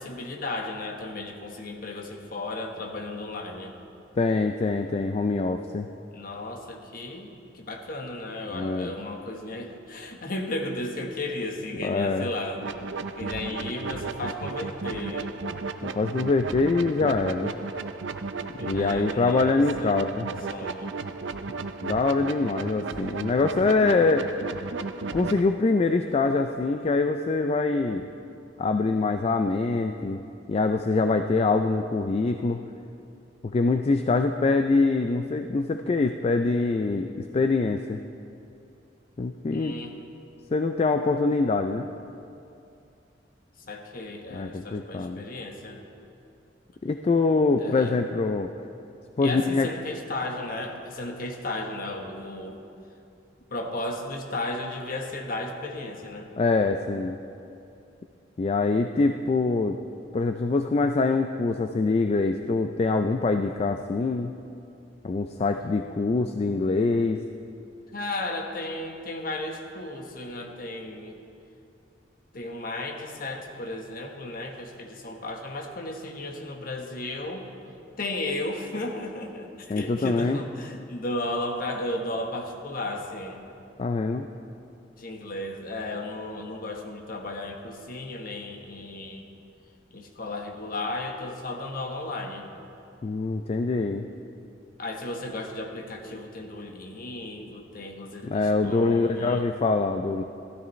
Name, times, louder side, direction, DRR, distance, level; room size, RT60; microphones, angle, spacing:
voice 1, 0.0-3.7 6.1-12.7 13.2-15.4 18.6-20.0 20.5-20.9 39.5-39.9 43.7-45.8 47.6-48.0 49.2-52.6 53.5-56.3 67.9-71.2 72.3-77.5 78.0-83.4 85.0-89.3 89.9-92.5 94.8-99.4, left 2 dB, 50° left, 2 dB, 1.2 m, -34 dB
voice 2, 4.2-5.9 8.5-8.9 11.8-12.3 16.0-17.5 18.5-20.3 21.8-24.3 25.1-28.1 28.6-30.2 30.5-32.6 33.4-38.0 39.2-39.7 40.5-41.9 44.3-45.2 46.8-48.5 49.2-49.7 56.4-57.2 58.4-59.8 60.1-64.3 65.0-67.2 79.7-80.4 83.8-84.3 93.0-94.1 98.2-100.2, left 3 dB, 35° left, 6 dB, 0.3 m, -24 dB
sound 1, 12.6-25.4, right 4 dB, 85° right, 0.5 m, -34 dB
15.5 x 12.5 x 3.2 m, 2.6 s
head